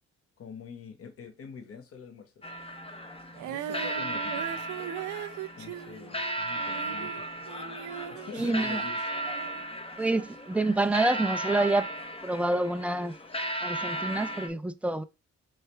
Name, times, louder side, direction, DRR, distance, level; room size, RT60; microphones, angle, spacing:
voice 1, 0.4-2.5 3.4-4.6 5.6-7.5 8.1-9.0, left 6 dB, 50° left, 1.2 m, -45 dB
sound 1, 2.4-14.5, right 1 dB, 20° left, 0.7 m, -35 dB
Female singing, 3.4-7.2 7.5-9.6, right 11 dB, 70° right, 0.6 m, -39 dB
voice 2, 8.3-8.8 10.0-11.9 12.2-13.2 13.6-15.0, right 2 dB, 5° right, 0.3 m, -27 dB
4.5 x 3.2 x 3.3 m
cardioid pair, 90°, 30 cm